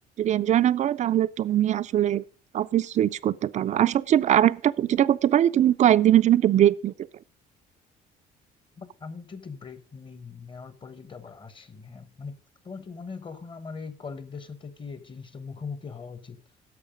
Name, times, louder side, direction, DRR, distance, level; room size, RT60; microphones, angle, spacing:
voice 1, 0.2-2.2 2.5-6.9, right 11 dB, 45° right, 0.4 m, -21 dB
voice 2, 8.8-12.4 12.6-16.4, left 5 dB, 30° left, 1.1 m, -40 dB
11.0 x 6.8 x 5.1 m
cardioid pair, 110°, 17 cm